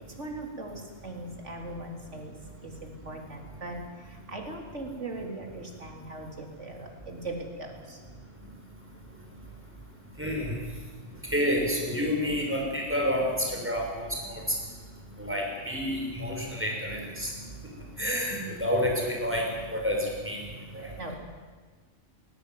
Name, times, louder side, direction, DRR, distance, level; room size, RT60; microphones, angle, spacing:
voice 1, 0.2-2.3 2.6-8.0 21.0-21.1, right 2 dB, 70° right, 2 dB, 3.9 m, -39 dB
voice 2, 10.2-10.5 11.3-13.2 13.6-14.4 15.2-17.3 18.0-19.4 19.7-20.0 20.2-20.4 20.7-20.8, equal, 10° right, -1 dB, 6.1 m, -29 dB
20.0 x 18.0 x 9.4 m, 1.5 s
omnidirectional pair, 1.3 m